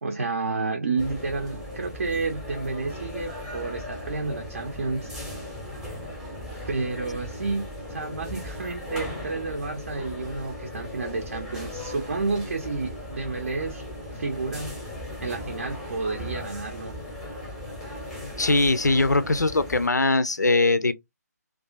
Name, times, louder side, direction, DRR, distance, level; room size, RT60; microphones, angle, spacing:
voice 1, 0.0-5.1 6.7-13.8 14.1-14.8 15.2-16.9, right 3 dB, 55° right, 0.6 m, -30 dB
sound 1, 1.0-19.9, left 1 dB, 5° right, 0.7 m, -37 dB
voice 2, 18.4-20.9, left 2 dB, 85° left, 0.4 m, -21 dB
2.5 x 2.4 x 2.2 m
figure-of-eight pair, 145°, 9 cm